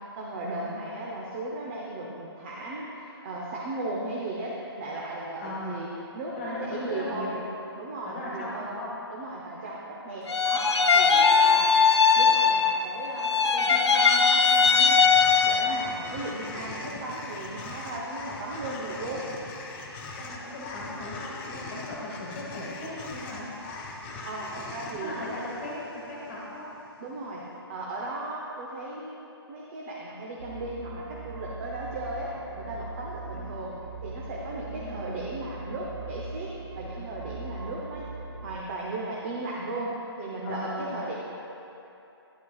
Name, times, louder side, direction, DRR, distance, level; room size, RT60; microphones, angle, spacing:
voice 1, 0.0-5.9 6.1-7.4 7.8-8.7 9.1-11.7 12.1-15.1 15.4-19.3 24.2-25.3 27.0-27.4 27.7-29.2 29.5-32.3 32.5-33.7 34.0-38.1 38.4-41.2, right 2 dB, 30° right, -4 dB, 0.8 m, -36 dB
voice 2, 0.6-0.9 5.4-5.8 6.3-7.4 8.0-8.9 11.1-11.7 13.6-13.8 20.1-23.6 25.0-26.7 33.3-33.4 34.8-35.0 40.4-41.0, left 1 dB, 30° left, -5 dB, 1.6 m, -38 dB
sound 1, 10.3-12.9 13.2-15.9, left 5 dB, 90° left, 0.6 m, -20 dB
sound 2, 14.6-27.0, left 3 dB, 10° left, 0.3 m, -41 dB
sound 3, 30.4-38.6, right 3 dB, 80° right, 0.6 m, -40 dB
11.0 x 8.2 x 2.4 m, 2.9 s
hypercardioid pair, 150°, 14 cm